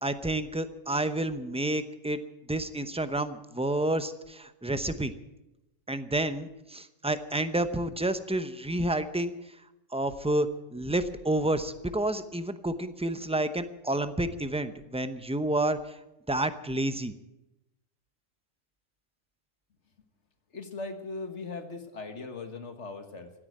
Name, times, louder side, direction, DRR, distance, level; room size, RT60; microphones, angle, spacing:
voice 1, 0.0-2.2 2.5-5.1 5.9-9.3 9.9-15.8 16.3-17.1, right 1 dB, 5° right, 10 dB, 0.6 m, -29 dB
voice 2, 20.5-23.3, left 3 dB, 60° left, 7 dB, 1.7 m, -39 dB
16.0 x 9.7 x 9.1 m, 0.93 s
omnidirectional pair, 1.3 m